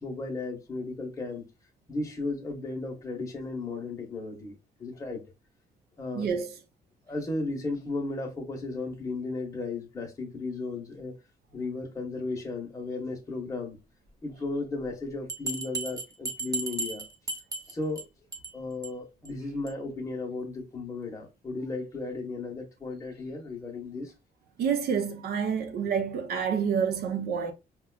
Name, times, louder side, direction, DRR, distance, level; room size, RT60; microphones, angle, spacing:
voice 1, 0.0-1.5 1.9-5.2 6.0-6.3 7.1-11.1 11.5-13.8 14.2-17.0 17.7-18.1 18.5-24.1, left 3 dB, 20° left, 0.9 m, -35 dB
voice 2, 6.1-6.6 24.6-27.5, right 7 dB, 75° right, 0.7 m, -28 dB
Bell, 15.3-18.0 18.3-18.5 18.8-18.9 19.2-19.3 19.7-19.8, right 3 dB, 20° right, 0.6 m, -34 dB
4.9 x 2.2 x 2.2 m
cardioid pair, 110°, 16 cm